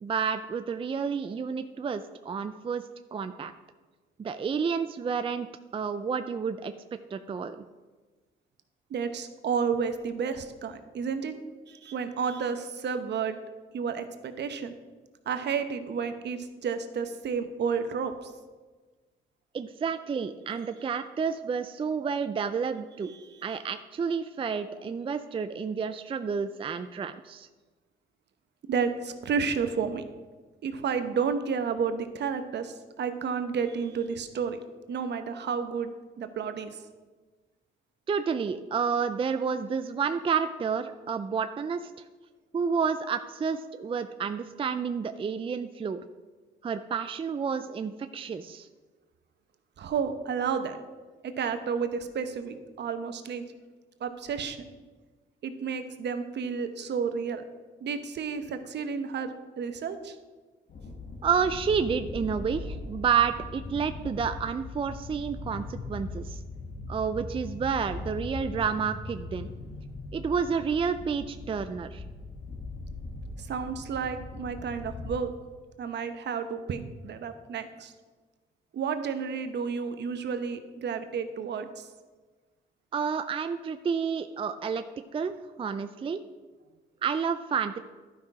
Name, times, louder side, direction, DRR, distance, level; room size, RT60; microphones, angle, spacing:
voice 1, 0.0-2.8 3.1-3.5 4.2-5.5 5.7-6.7 7.1-7.6 19.5-23.1 23.4-27.5 38.1-41.9 42.5-46.0 46.6-48.7 61.2-66.4 66.9-69.5 70.1-72.0 82.9-84.8 85.1-86.2 87.0-87.8, right 6 dB, 25° right, 9 dB, 0.4 m, -30 dB
voice 2, 8.9-11.3 11.7-13.4 13.7-14.7 15.3-18.3 23.0-23.5 28.7-30.0 30.6-34.6 34.9-36.8 49.8-50.8 51.2-53.4 54.0-54.7 55.4-57.4 57.8-60.2 73.4-75.3 75.8-77.9 78.7-81.9, right 6 dB, 60° right, 9 dB, 0.9 m, -31 dB
sound 1, 60.7-75.2, left 2 dB, 45° left, 1.6 m, -40 dB
11.5 x 5.6 x 4.8 m, 1.3 s
cardioid pair, 90°, 20 cm